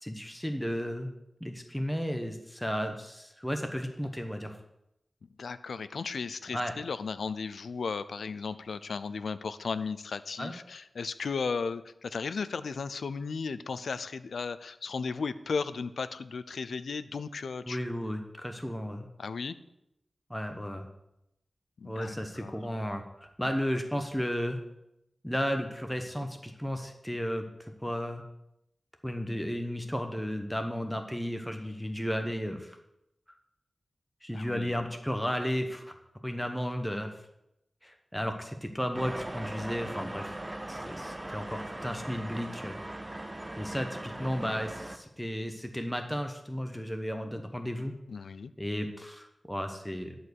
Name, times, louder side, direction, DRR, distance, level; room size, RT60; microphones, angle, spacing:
voice 1, 0.0-1.1 1.4-4.5 6.5-6.7 10.4-10.5 17.6-19.1 20.3-20.9 21.8-24.6 25.2-28.2 29.0-32.8 34.2-35.9 36.2-37.1 37.8-40.4 40.7-42.8 43.6-48.0 48.6-50.1, equal, 5° left, 5 dB, 1.1 m, -34 dB
voice 2, 5.4-17.9 19.2-19.6 21.8-22.6 34.3-34.8 48.1-48.5, left 5 dB, 90° left, 14 dB, 0.5 m, -35 dB
sound 1, 38.9-45.0, right 1 dB, 20° right, 0.8 m, -39 dB
11.0 x 4.7 x 8.1 m, 0.83 s
wide cardioid pair, 75°, 0 cm